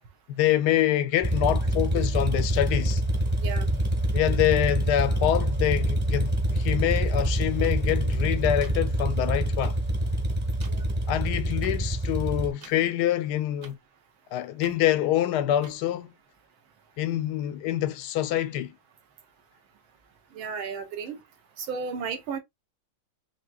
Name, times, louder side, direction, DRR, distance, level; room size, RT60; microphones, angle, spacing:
voice 1, 0.3-3.0 4.1-9.8 11.1-13.8 14.3-16.1 17.0-18.7, left 12 dB, 75° left, 1.0 m, -26 dB
sound 1, 1.2-12.5, right 1 dB, 20° right, 0.8 m, -26 dB
voice 2, 3.4-3.7 10.7-11.0 20.3-21.2 21.6-22.4, right 5 dB, 75° right, 1.9 m, -34 dB
sound 2, 7.6-7.7 8.6-8.7 9.6-9.7 10.6-10.7 11.6-11.7 12.6-12.7 13.6-13.7 14.6-14.8 15.6-15.7, right 6 dB, 50° right, 0.9 m, -46 dB
5.7 x 3.0 x 2.3 m
omnidirectional pair, 2.2 m